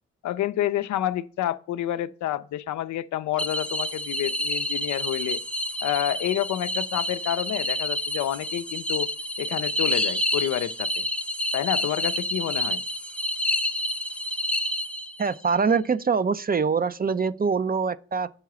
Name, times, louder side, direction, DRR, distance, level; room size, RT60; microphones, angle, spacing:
voice 1, 0.2-5.4 5.8-9.1 9.4-11.0 11.5-12.8, left 12 dB, 75° left, 0.6 m, -29 dB
sound 1, 3.4-15.3, left 1 dB, 5° left, 0.8 m, -29 dB
voice 2, 15.2-18.3, right 5 dB, 30° right, 0.6 m, -24 dB
8.1 x 4.6 x 6.1 m
hypercardioid pair, 40°, 29 cm